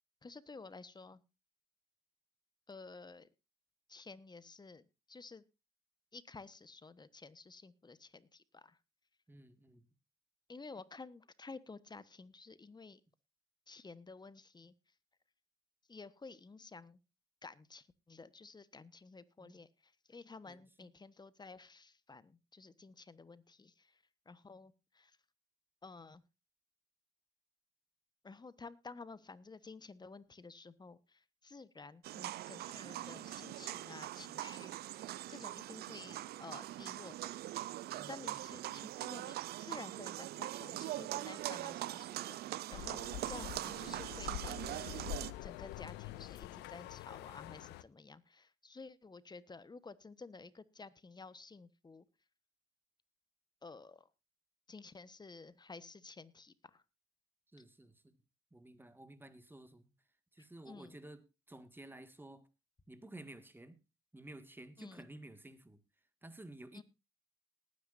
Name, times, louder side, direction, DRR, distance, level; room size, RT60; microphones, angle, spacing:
voice 1, 0.2-1.2 2.7-3.3 3.9-5.4 6.1-8.8 10.5-13.0 13.7-14.7 15.9-17.0 17.4-25.2 25.8-26.2 28.2-37.5 38.1-43.0 43.3-45.0 45.4-52.1 53.6-54.1 54.7-56.8 60.4-61.0 64.8-65.0 66.7-66.8, left 4 dB, 25° left, 1.2 m, -53 dB
voice 2, 9.3-9.9 19.4-19.6 20.5-20.9 38.0-38.4 57.5-58.1 58.5-59.9 60.3-62.5 62.9-63.8 64.1-65.8 66.2-66.8, right 1 dB, 10° right, 2.0 m, -53 dB
sound 1, 32.0-45.3, right 15 dB, 65° right, 0.6 m, -42 dB
sound 2, 42.7-47.8, left 14 dB, 80° left, 0.7 m, -46 dB
19.5 x 9.8 x 2.6 m
supercardioid pair, 60°, 17 cm